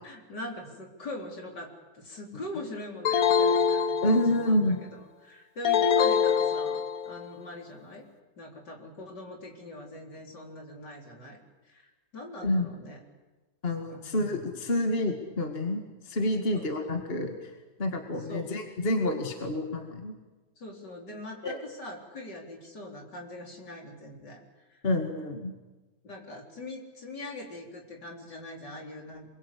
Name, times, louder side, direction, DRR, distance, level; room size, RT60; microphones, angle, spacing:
voice 1, 0.0-4.6 4.9-8.0 8.4-11.4 11.6-13.0 13.9-14.1 16.5-16.9 18.2-18.5 20.6-24.8 26.0-29.3, left 1 dB, 80° left, 0 dB, 4.8 m, -42 dB
sound 1, 3.0-4.6 5.6-7.2, left 7 dB, 60° left, 1.6 m, -24 dB
voice 2, 4.0-4.8 12.4-12.7 13.6-17.5 17.8-20.2 21.4-21.6 24.8-25.5, left 1 dB, 35° left, 3 dB, 2.3 m, -28 dB
28.0 x 22.0 x 8.5 m, 1.2 s
omnidirectional pair, 1.8 m